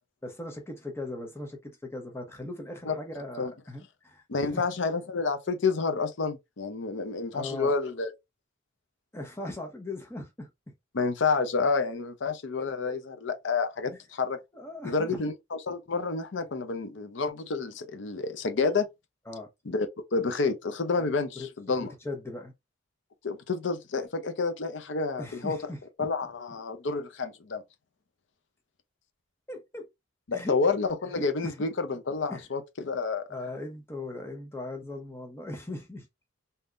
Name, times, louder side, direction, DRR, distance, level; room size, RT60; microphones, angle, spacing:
voice 1, 0.2-4.7 7.3-7.7 9.1-10.7 12.6-13.0 14.5-15.2 19.3-19.5 21.0-21.1 21.3-22.5 25.2-26.1 29.5-29.9 30.3-30.6 31.1-31.6 32.3-32.5 33.3-36.1, left 2 dB, 15° left, 0.8 m, -39 dB
voice 2, 4.3-8.1 10.9-14.4 14.8-18.9 19.7-19.9 20.1-21.9 23.2-25.6 26.0-27.6 30.3-33.2, left 4 dB, 75° left, 0.6 m, -29 dB
3.5 x 2.8 x 2.5 m
head